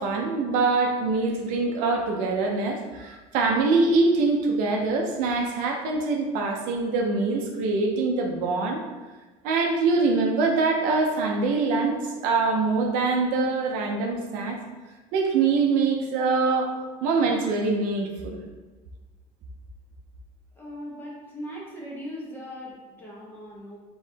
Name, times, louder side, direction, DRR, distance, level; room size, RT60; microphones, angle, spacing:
voice 1, 0.0-8.8 9.4-14.6 15.1-16.7 17.0-18.4, right 3 dB, 75° right, 2 dB, 0.7 m, -24 dB
voice 2, 20.6-23.8, equal, 15° left, -6 dB, 1.2 m, -39 dB
4.6 x 3.1 x 3.4 m, 1.2 s
cardioid pair, 160°, 15 cm